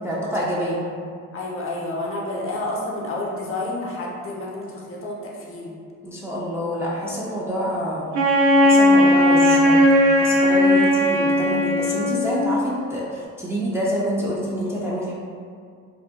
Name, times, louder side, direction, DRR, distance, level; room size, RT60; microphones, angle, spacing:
voice 1, 0.0-0.8 6.0-8.1 8.6-9.9 10.2-15.1, equal, 10° right, -6 dB, 0.3 m, -27 dB
voice 2, 1.3-5.8, left 2 dB, 45° left, -3 dB, 0.5 m, -30 dB
Wind instrument woodwind instrument, 8.1-12.5, left 1 dB, 80° right, 0.5 m, -17 dB
2.6 x 2.1 x 2.2 m, 2.2 s
cardioid pair, 90°, 30 cm